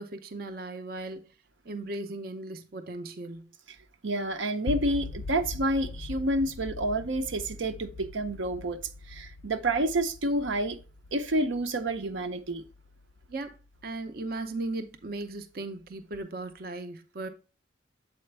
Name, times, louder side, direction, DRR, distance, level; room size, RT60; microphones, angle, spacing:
voice 1, 0.0-1.3 1.6-3.5 13.3-13.6 13.8-17.3, right 2 dB, 50° right, 0.5 m, -37 dB
voice 2, 4.0-8.8 9.1-10.8 11.1-12.6, right 1 dB, 85° right, 0.7 m, -29 dB
sound 1, 4.7-14.7, left 3 dB, 75° left, 0.4 m, -42 dB
7.7 x 4.4 x 3.2 m
head